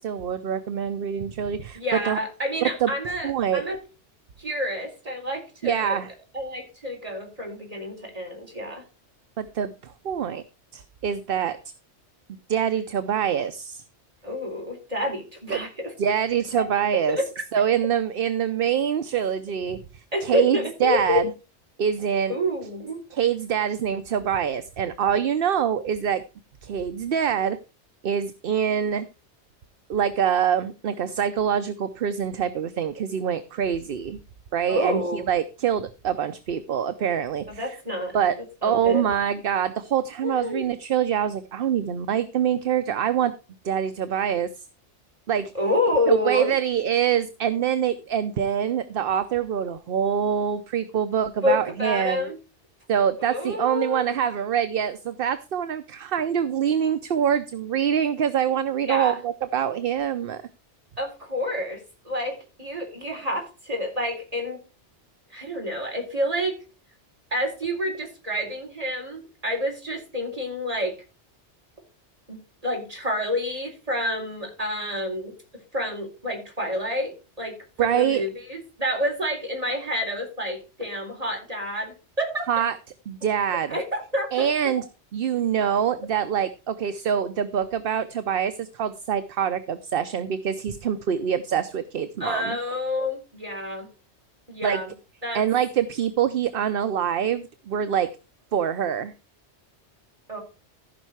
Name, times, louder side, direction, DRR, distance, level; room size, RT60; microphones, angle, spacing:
voice 1, 0.0-2.2 2.6-2.9 3.2-3.6 5.6-6.1 9.4-10.4 10.7-11.6 12.5-13.8 15.5-15.6 16.0-17.2 17.5-19.8 20.2-21.2 21.8-22.3 23.1-26.2 26.6-27.6 28.0-29.1 29.9-34.2 34.5-37.8 38.1-38.3 38.6-43.3 43.6-44.5 45.3-45.5 46.1-52.3 52.9-60.4 77.8-78.2 82.5-82.7 83.1-83.8 84.3-84.8 85.1-92.6 94.6-94.8 95.3-98.1 98.5-99.1, right 8 dB, 60° right, 11 dB, 0.8 m, -25 dB
voice 2, 1.7-3.8 4.4-6.0 6.3-8.8 14.2-15.9 16.6-16.7 17.1-17.3 20.1-21.2 22.3-23.0 34.7-35.3 37.5-38.2 38.6-39.1 40.2-40.6 45.5-46.5 51.4-52.4 53.2-54.1 58.8-59.2 61.0-64.6 65.3-66.6 67.3-71.0 72.3-75.3 75.7-82.4 83.7-84.5 92.2-93.9 94.5-94.9 95.2-95.4 100.3-100.4, left 1 dB, 30° right, 1 dB, 4.1 m, -28 dB
15.0 x 5.5 x 4.6 m, 0.31 s
omnidirectional pair, 1.2 m